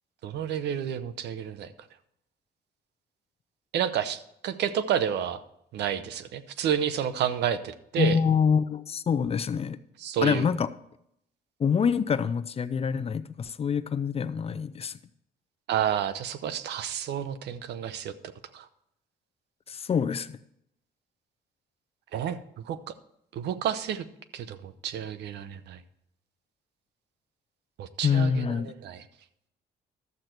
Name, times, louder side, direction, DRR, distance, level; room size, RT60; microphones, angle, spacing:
voice 1, 0.2-1.7 3.7-5.4 5.7-8.2 10.0-10.5 15.7-18.1 18.5-18.7 22.1-22.4 22.7-22.8 23.3-24.0 24.3-25.8 27.8-29.0, right 9 dB, 75° right, 13 dB, 0.8 m, -30 dB
voice 2, 8.0-9.8 10.2-10.7 11.6-14.9 19.7-20.4 28.0-28.7, left 6 dB, 35° left, 12 dB, 0.6 m, -26 dB
12.0 x 7.8 x 4.5 m, 0.75 s
cardioid pair, 110°, 18 cm